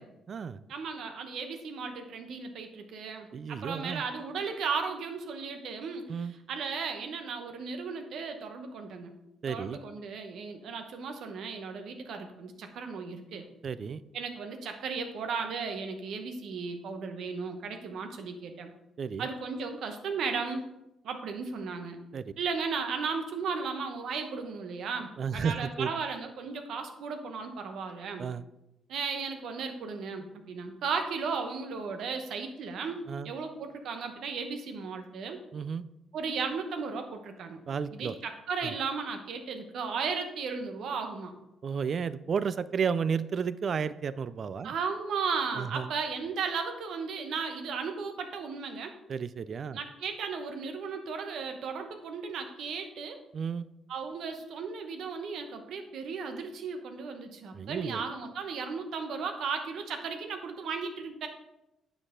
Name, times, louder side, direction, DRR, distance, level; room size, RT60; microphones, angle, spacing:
voice 1, 0.0-0.6 3.3-4.0 6.1-6.3 9.4-9.8 13.6-14.0 19.0-19.3 22.1-22.3 25.2-25.9 28.2-28.4 33.1-33.3 35.5-35.8 37.7-38.2 38.6-38.7 41.6-44.8 45.6-45.9 49.1-49.8 53.3-53.6 57.5-58.0, right 6 dB, 50° right, 16 dB, 0.3 m, -32 dB
voice 2, 0.7-9.1 9.5-13.4 14.1-18.7 19.2-20.6 21.0-22.0 22.4-28.3 28.9-35.4 36.1-37.6 37.9-41.3 44.6-48.9 49.7-53.2 53.9-61.3, right 5 dB, 70° right, 6 dB, 0.9 m, -35 dB
8.9 x 4.8 x 3.7 m, 0.94 s
cardioid pair, 90°, 0 cm